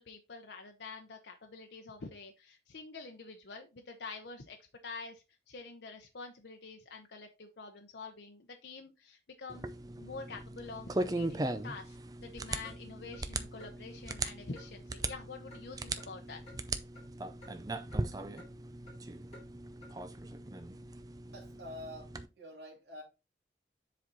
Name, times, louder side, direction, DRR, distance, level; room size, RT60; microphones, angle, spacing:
voice 1, 0.0-4.6 4.8-9.7 10.0-16.6, left 4 dB, 75° left, 0.8 m, -47 dB
sound 1, 9.5-22.3, right 2 dB, 20° right, 0.5 m, -39 dB
Clock, 12.6-12.8 13.1-13.2 13.6-13.7 14.1-14.2 14.6-14.7 15.0-15.2 15.5-15.6 16.0-16.1 16.5-16.6 17.0-17.1 17.4-17.5 17.9-18.0 18.4-18.5 18.9-19.0 19.3-19.5 19.8-19.9, left 2 dB, 35° left, 3.5 m, -54 dB
voice 2, 21.3-23.0, left 1 dB, 90° right, 2.4 m, -47 dB
7.5 x 4.1 x 4.0 m
head